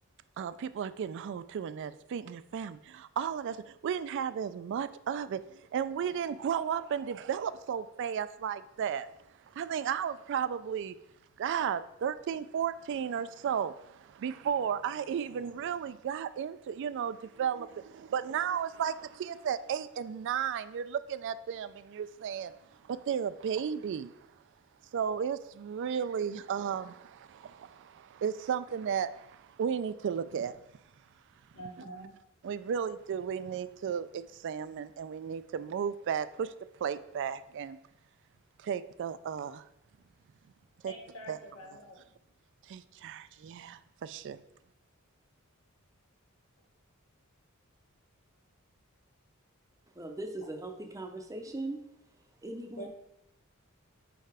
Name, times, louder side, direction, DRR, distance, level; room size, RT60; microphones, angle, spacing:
voice 1, 0.4-9.1 9.5-10.9 11.4-22.5 22.8-24.1 24.9-30.6 32.4-36.5 36.8-37.8 38.6-39.6 40.8-40.9 41.3-41.4 42.7-44.4, right 8 dB, 55° right, 0.3 m, -34 dB
voice 2, 31.5-32.1 40.8-42.0 52.8-52.9, equal, 70° left, 1.5 m, -45 dB
voice 3, 49.9-51.8 52.4-52.9, right 2 dB, 15° right, 0.6 m, -39 dB
4.6 x 4.4 x 4.8 m
head